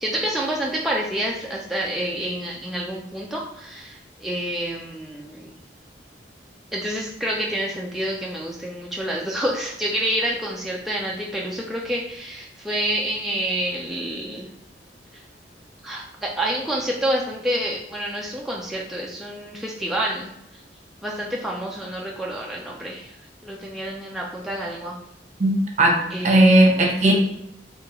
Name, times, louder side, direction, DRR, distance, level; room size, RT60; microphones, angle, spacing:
voice 1, 0.0-5.5 6.7-14.5 15.8-20.3 21.0-23.1 23.4-24.9 26.1-26.7, right 1 dB, ahead, -3 dB, 0.3 m, -28 dB
voice 2, 25.4-26.0 26.2-27.1, right 1 dB, 45° right, 0 dB, 0.7 m, -16 dB
3.7 x 2.8 x 2.9 m, 0.79 s
head